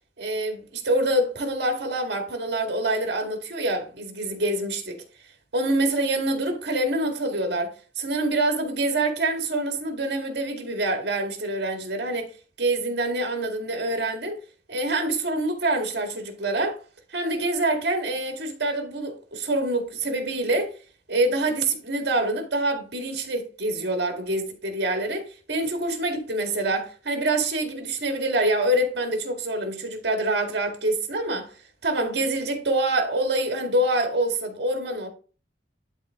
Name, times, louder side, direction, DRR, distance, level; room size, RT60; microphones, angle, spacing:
voice 1, 0.2-5.0 5.5-12.3 12.6-14.4 14.7-16.8 17.1-20.7 21.1-31.5 31.8-35.1, right 2 dB, 60° right, 1.9 m, -26 dB
11.5 x 4.0 x 3.6 m
head